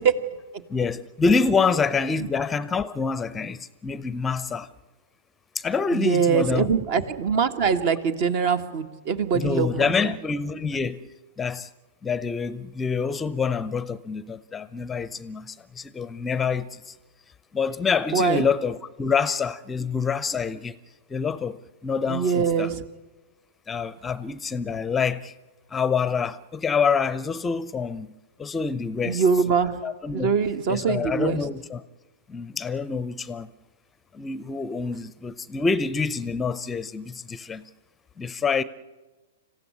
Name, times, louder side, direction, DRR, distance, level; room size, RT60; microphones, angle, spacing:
voice 1, 0.7-4.7 5.5-6.7 9.3-11.1 11.4-11.7 12.0-16.9 17.5-20.7 21.1-22.7 23.7-25.3 25.7-28.1 28.4-29.2 29.8-30.3 30.7-31.8 32.3-33.5 34.1-37.7 38.2-38.6, left 5 dB, 15° left, 0.7 m, -26 dB
voice 2, 5.9-10.1 18.1-18.4 22.1-22.8 29.0-29.8 30.1-31.4, right 6 dB, 50° right, 1.8 m, -23 dB
26.5 x 15.0 x 9.7 m
hypercardioid pair, 115°, 0 cm